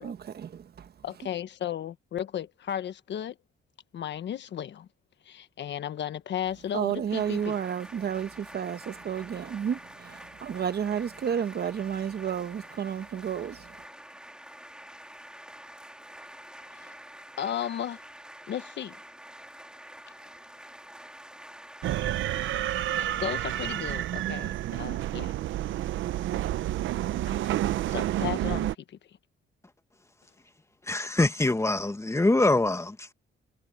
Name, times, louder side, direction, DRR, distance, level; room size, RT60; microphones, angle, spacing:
voice 1, 0.0-0.9 6.7-13.8, right 8 dB, 55° right, 1.5 m, -31 dB
voice 2, 1.0-3.4 3.9-4.9 5.2-7.6 16.6-16.9 17.4-18.0 18.5-19.0 22.9-25.3 27.2-27.5 27.9-29.0, left 10 dB, 65° left, 1.3 m, -35 dB
sound 1, 7.1-23.8, right 1 dB, 5° right, 3.6 m, -47 dB
sound 2, 21.8-28.7, right 13 dB, 75° right, 0.8 m, -29 dB
voice 3, 30.9-33.1, left 2 dB, 15° left, 1.9 m, -24 dB
cardioid pair, 90°, 20 cm